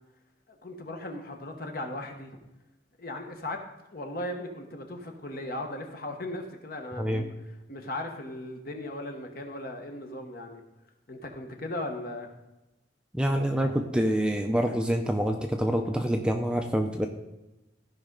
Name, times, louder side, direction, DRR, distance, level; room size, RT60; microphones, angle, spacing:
voice 1, 0.5-2.4 3.0-3.6 3.9-7.3 7.7-10.6 11.1-12.3, left 1 dB, 50° left, 3 dB, 1.2 m, -37 dB
voice 2, 13.1-17.1, equal, 5° right, 4 dB, 0.5 m, -26 dB
15.0 x 5.4 x 3.8 m, 0.99 s
head